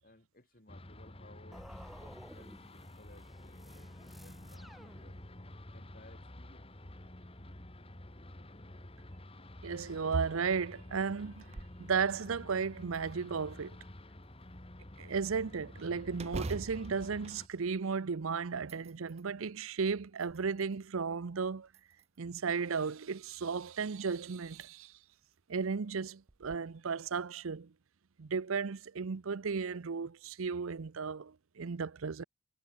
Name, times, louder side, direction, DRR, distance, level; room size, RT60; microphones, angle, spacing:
voice 1, 0.0-5.2 5.7-6.7, left 1 dB, 45° left, 4.3 m, -60 dB
sound 1, 0.7-17.5, left 1 dB, 25° left, 1.9 m, -50 dB
sound 2, 1.5-5.6, equal, ahead, 0.8 m, -54 dB
voice 2, 9.6-13.8 15.0-21.7 22.2-24.9 25.5-27.7 28.2-32.2, right 5 dB, 75° right, 0.6 m, -35 dB
sound 3, 11.3-11.8 12.3-12.4 12.9-13.7 16.1-18.1 18.5-19.3 19.9-20.8 21.7-22.3 23.8-23.9 24.4-24.7 25.1-25.2 26.3-26.6, right 2 dB, 30° right, 0.6 m, -45 dB
head